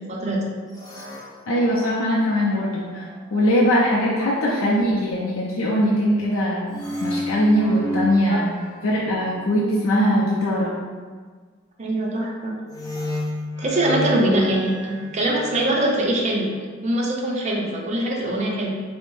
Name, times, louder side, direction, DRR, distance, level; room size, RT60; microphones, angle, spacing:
voice 1, 0.1-0.4 8.3-8.4 11.8-12.5 13.6-18.7, right 1 dB, 35° right, -3 dB, 0.5 m, -23 dB
sound 1, 0.7-3.3 6.7-9.8 12.7-15.8, left 1 dB, 20° left, 0.4 m, -32 dB
voice 2, 1.5-8.5 8.8-10.7, equal, 80° left, -5 dB, 0.5 m, -21 dB
3.4 x 2.0 x 3.1 m, 1.5 s
head